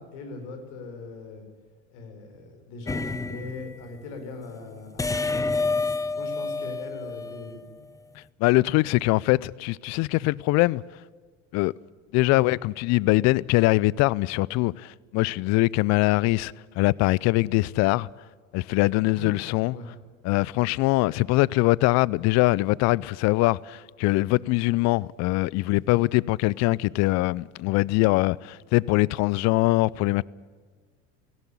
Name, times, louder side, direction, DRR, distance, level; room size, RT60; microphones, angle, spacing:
voice 1, 0.0-1.4 1.9-5.6 6.2-7.6 19.1-19.3 19.7-19.9, left 3 dB, 65° left, 4.9 m, -40 dB
sound 1, 2.9-3.8 5.0-7.8, left 3 dB, 10° left, 0.8 m, -28 dB
voice 2, 8.4-10.8 11.5-11.7 12.1-18.1 18.5-19.8 20.2-30.2, left 20 dB, 45° left, 0.5 m, -22 dB
17.5 x 16.5 x 9.9 m
hypercardioid pair, 80°, 37 cm